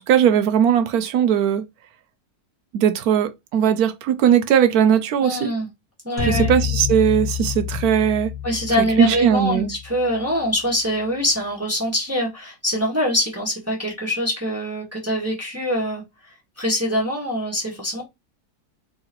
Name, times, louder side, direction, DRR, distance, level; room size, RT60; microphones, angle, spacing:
voice 1, 0.0-1.6 2.7-5.5 6.2-8.3 8.8-9.7, right 9 dB, 70° right, 1.1 m, -19 dB
voice 2, 5.2-5.7 6.0-6.5 8.4-18.0, equal, 10° right, 1.5 m, -24 dB
sound 1, 6.2-10.5, left 8 dB, 50° left, 0.6 m, -28 dB
4.0 x 3.8 x 3.0 m
omnidirectional pair, 1.8 m